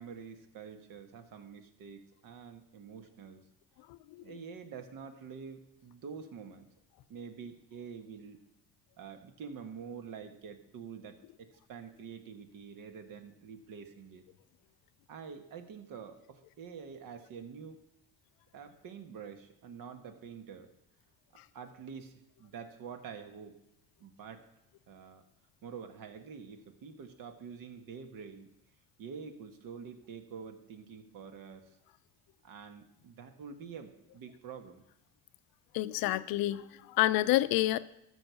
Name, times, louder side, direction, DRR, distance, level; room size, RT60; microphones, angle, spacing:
voice 1, 0.0-3.4 4.2-6.7 7.1-8.4 9.0-14.2 15.1-17.8 18.5-20.7 21.3-23.5 24.0-24.5 24.9-25.2 25.6-28.5 29.0-31.8 32.4-34.8, right 6 dB, 70° right, 8 dB, 1.4 m, -47 dB
voice 2, 3.9-4.2 35.7-37.8, left 16 dB, 80° left, 15 dB, 0.6 m, -29 dB
13.0 x 4.8 x 6.9 m, 0.81 s
cardioid pair, 90°, 35 cm